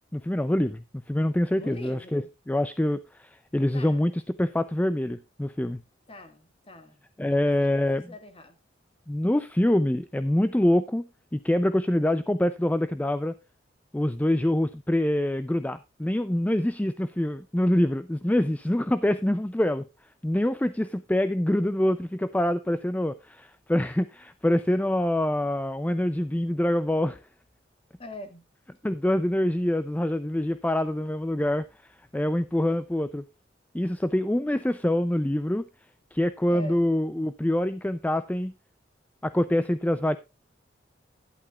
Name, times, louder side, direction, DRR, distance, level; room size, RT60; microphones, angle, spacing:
voice 1, 0.1-2.2 2.5-5.8 7.2-8.1 9.1-13.4 13.9-19.9 20.2-27.2 28.8-31.7 32.1-33.2 33.7-35.7 36.1-38.5 39.2-40.2, left 1 dB, 10° left, 0.4 m, -25 dB
voice 2, 1.5-2.3 3.7-4.1 6.1-7.0 7.3-8.6 28.0-28.4 36.5-36.9, left 1 dB, 30° left, 1.8 m, -43 dB
12.0 x 11.0 x 2.4 m
head